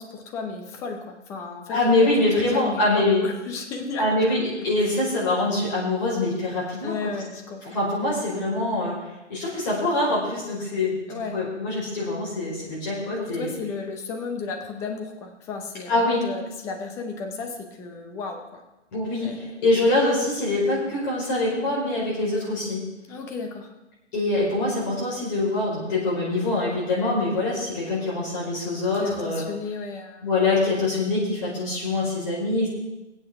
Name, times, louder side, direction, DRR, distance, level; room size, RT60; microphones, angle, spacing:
voice 1, 0.0-2.1 2.4-4.3 4.8-4.9 6.8-7.8 11.1-11.4 13.2-18.6 19.2-19.6 23.1-23.7 28.9-30.3, left 4 dB, 10° left, 4 dB, 0.6 m, -34 dB
voice 2, 1.7-3.2 4.0-6.9 7.6-8.9 9.3-13.5 15.9-16.2 18.9-19.3 19.6-22.8 24.1-29.4 30.2-32.7, left 2 dB, 35° left, -5 dB, 4.4 m, -24 dB
19.0 x 8.9 x 3.5 m, 1.0 s
hypercardioid pair, 150°, 35 cm